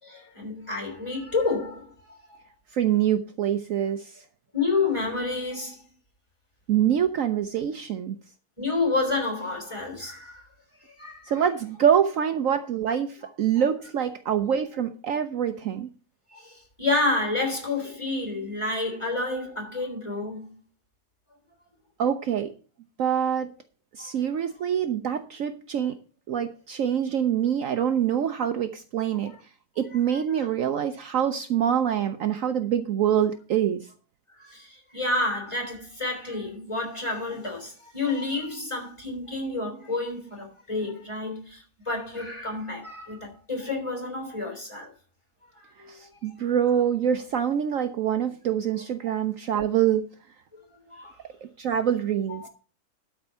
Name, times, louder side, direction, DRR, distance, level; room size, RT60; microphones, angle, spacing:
voice 1, 0.0-2.4 4.5-5.8 8.6-10.4 11.0-11.4 16.3-20.6 24.0-24.2 30.1-30.4 34.4-44.9 45.6-45.9 50.9-51.2 52.3-52.5, left 3 dB, 20° left, 3.3 m, -30 dB
voice 2, 2.7-4.2 6.7-8.2 11.3-15.9 22.0-22.5 23.0-23.5 23.9-26.0 26.3-29.3 29.8-33.9 45.9-50.0 51.6-52.5, right 9 dB, 65° right, 1.0 m, -25 dB
12.5 x 4.3 x 6.8 m
omnidirectional pair, 1.7 m